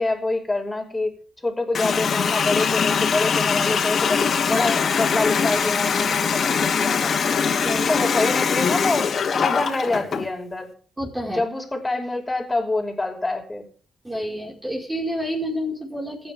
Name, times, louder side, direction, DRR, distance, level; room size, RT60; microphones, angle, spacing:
voice 1, 0.0-7.2 7.9-10.7 11.3-13.7, left 2 dB, 15° left, 3 dB, 5.7 m, -26 dB
Water tap faucet, 1.7-10.3, left 6 dB, 50° left, 3.5 m, -22 dB
voice 2, 7.6-8.0 11.0-11.4 14.0-16.3, equal, 15° right, 0 dB, 5.0 m, -29 dB
27.5 x 9.9 x 3.6 m, 0.42 s
cardioid pair, 90°, 0 cm